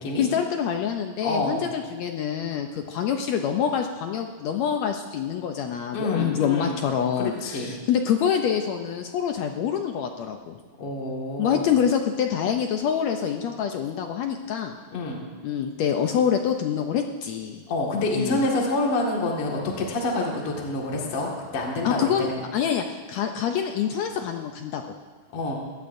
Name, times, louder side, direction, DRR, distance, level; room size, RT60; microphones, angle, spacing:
voice 1, 0.2-10.6 11.4-14.8 15.4-17.7 18.1-18.4 21.8-24.8, left 8 dB, 80° left, 4 dB, 1.5 m, -26 dB
voice 2, 1.2-1.7 5.9-6.8 7.2-7.7 10.8-11.7 14.9-15.2 17.7-22.4 25.3-25.6, left 2 dB, 45° left, -2 dB, 2.5 m, -27 dB
21.5 x 17.0 x 2.6 m, 1.5 s
omnidirectional pair, 3.8 m